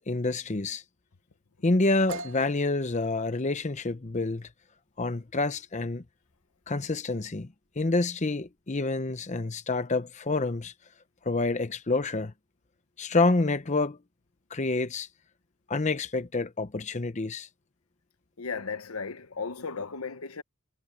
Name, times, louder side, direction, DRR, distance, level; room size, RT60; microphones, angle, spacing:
voice 1, 0.1-0.8 1.6-4.5 5.0-6.0 6.7-7.5 7.8-10.7 11.3-12.3 13.0-14.0 14.5-15.1 15.7-17.5, left 3 dB, 35° left, 0.7 m, -28 dB
sound 1, 2.1-9.7, right 2 dB, 70° right, 1.8 m, -47 dB
voice 2, 18.4-20.4, left 5 dB, 85° left, 1.1 m, -35 dB
head